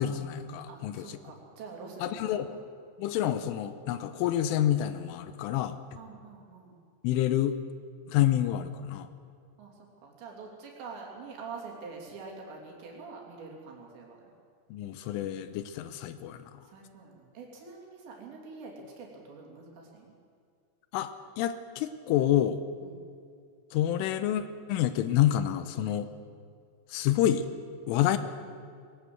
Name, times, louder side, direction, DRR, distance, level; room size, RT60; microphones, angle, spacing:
voice 1, 0.0-1.2 2.0-2.6 3.0-5.8 7.0-7.6 8.1-9.1 14.7-16.4 20.9-22.6 23.7-24.4 24.7-26.1 26.9-27.5 27.9-28.2, left 11 dB, 80° left, 11 dB, 3.2 m, -28 dB
voice 2, 0.7-2.6 3.2-3.3 5.9-6.8 9.6-9.7 10.0-14.2 16.6-20.1 22.8-23.0, right 4 dB, 60° right, 0 dB, 5.1 m, -45 dB
21.0 x 17.5 x 7.9 m, 2.2 s
omnidirectional pair, 5.8 m